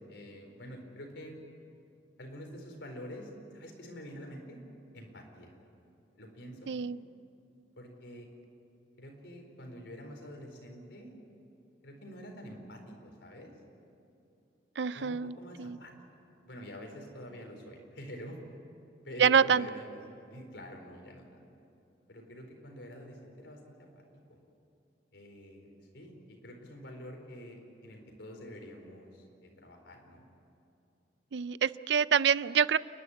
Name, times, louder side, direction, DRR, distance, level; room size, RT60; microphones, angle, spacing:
voice 1, 0.1-1.3 2.2-4.6 4.9-5.5 6.2-6.7 7.8-8.3 9.0-11.1 11.8-13.5 14.9-15.9 16.4-18.4 19.0-21.3 22.1-24.0 24.3-24.4 25.1-30.2, equal, 85° left, 2 dB, 4.2 m, -47 dB
voice 2, 6.7-7.0 14.8-15.8 19.2-19.7 31.3-32.8, right 7 dB, 75° right, 17 dB, 0.4 m, -26 dB
30.0 x 11.5 x 9.8 m, 2.7 s
head